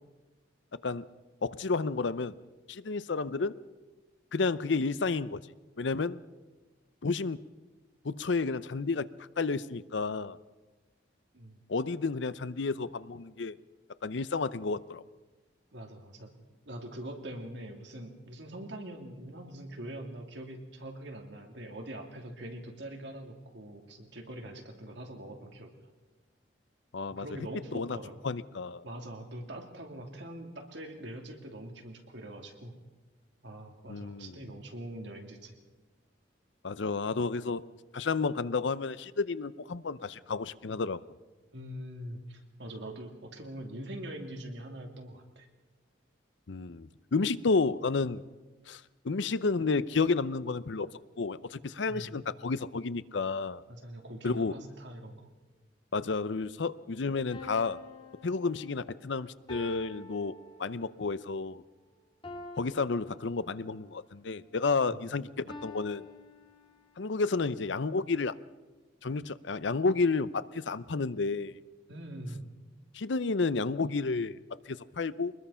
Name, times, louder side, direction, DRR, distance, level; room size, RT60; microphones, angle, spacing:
voice 1, 1.4-2.3 2.7-3.6 4.3-5.4 5.8-6.2 7.0-7.4 8.0-9.1 9.4-10.4 11.7-13.5 14.0-15.0 26.9-27.3 27.7-28.0 28.2-28.8 33.9-34.4 36.6-37.6 37.9-41.0 46.5-48.2 48.7-50.9 51.2-53.6 54.2-54.5 55.9-57.8 58.2-61.6 62.6-66.0 67.0-68.4 69.0-71.5 72.9-74.4 74.7-75.3, left 4 dB, 75° left, 16 dB, 0.6 m, -31 dB
voice 2, 15.7-16.3 16.7-25.7 27.1-28.2 28.8-32.7 33.4-35.5 41.5-45.5 51.9-52.2 53.7-55.3 64.9-65.0 71.9-72.5, right 1 dB, 70° right, 3 dB, 2.7 m, -43 dB
sound 1, 57.3-61.1 62.2-63.8 65.5-67.0, left 2 dB, 25° left, 2.3 m, -48 dB
23.5 x 20.5 x 5.7 m, 1.2 s
head